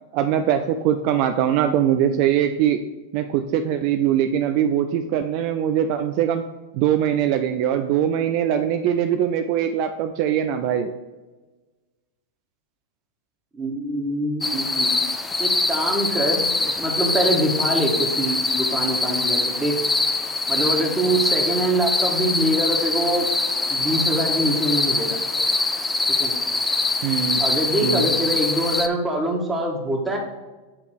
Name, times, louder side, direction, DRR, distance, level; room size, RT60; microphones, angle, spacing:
voice 1, 0.1-2.8 3.1-6.4 6.7-10.9 27.0-27.4 27.8-28.1, right 9 dB, 50° right, 7 dB, 0.4 m, -22 dB
voice 2, 13.5-14.9 15.4-16.5 16.8-19.7 20.5-23.3 23.7-25.2 26.1-26.3 27.4-30.2, right 1 dB, 10° right, 0 dB, 1.6 m, -24 dB
sound 1, 14.4-28.9, left 3 dB, 10° left, 0.6 m, -23 dB
8.3 x 3.5 x 4.5 m, 1.2 s
hypercardioid pair, 95°, 0 cm